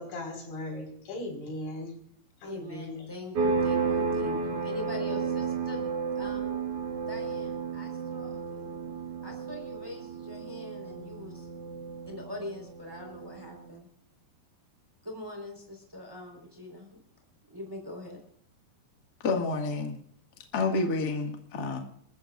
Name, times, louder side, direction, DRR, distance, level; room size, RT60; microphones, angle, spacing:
voice 1, 0.0-2.0 2.4-3.1, left 1 dB, 85° left, 1 dB, 6.8 m, -38 dB
voice 2, 2.4-6.6 7.1-8.7 9.2-11.5 12.1-13.9 15.0-17.0 17.5-18.2, left 1 dB, 5° right, 2 dB, 3.7 m, -42 dB
sound 1, 3.3-13.7, right 5 dB, 60° right, 1.6 m, -32 dB
voice 3, 19.2-20.0 20.5-21.8, left 3 dB, 55° left, 2 dB, 1.1 m, -29 dB
28.0 x 14.0 x 2.5 m, 0.68 s
omnidirectional pair, 5.1 m